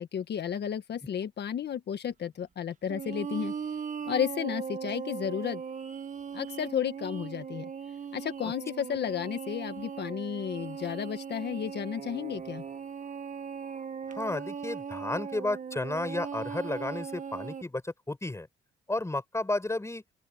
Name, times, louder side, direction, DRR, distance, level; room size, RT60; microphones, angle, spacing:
voice 1, 0.0-3.5 4.1-5.6 6.3-7.7 8.1-12.6, left 8 dB, 60° left, 1.7 m, -33 dB
sound 1, 2.9-17.6, right 6 dB, 40° right, 1.8 m, -39 dB
voice 2, 14.2-18.5 18.9-20.0, left 2 dB, 15° left, 6.6 m, -32 dB
open air
cardioid pair, 90°, 20 cm